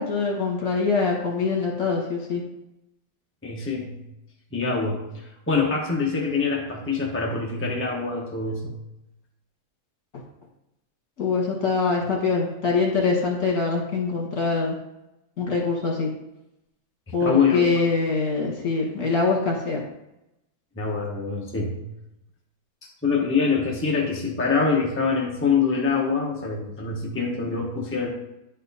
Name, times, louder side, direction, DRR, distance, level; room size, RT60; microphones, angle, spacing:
voice 1, 0.0-2.4 11.2-14.8 15.4-16.1 17.1-19.8, left 4 dB, 60° left, -1 dB, 2.1 m, -24 dB
voice 2, 3.4-4.0 4.5-8.7 17.1-17.8 20.8-21.9 22.8-28.1, left 5 dB, 10° left, -2 dB, 1.0 m, -25 dB
10.0 x 4.4 x 4.1 m, 0.90 s
omnidirectional pair, 1.6 m